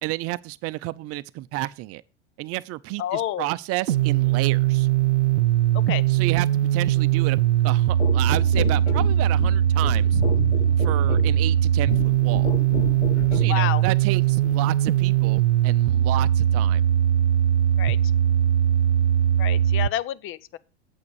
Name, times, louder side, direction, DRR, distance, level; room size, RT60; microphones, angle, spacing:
voice 1, 0.0-2.0 2.4-4.9 6.1-7.4 7.6-10.2 10.8-12.5 13.3-16.8, right 18 dB, 45° right, 0.6 m, -31 dB
voice 2, 3.0-3.5 5.9-6.0 13.5-13.8 17.8-18.0 19.4-20.6, left 13 dB, 35° left, 0.7 m, -28 dB
sound 1, 3.9-19.9, right 11 dB, 90° right, 0.5 m, -20 dB
sound 2, 8.0-13.6 14.4-14.6, left 7 dB, 85° left, 1.1 m, -31 dB
8.5 x 7.4 x 4.8 m
hypercardioid pair, 90°, 34 cm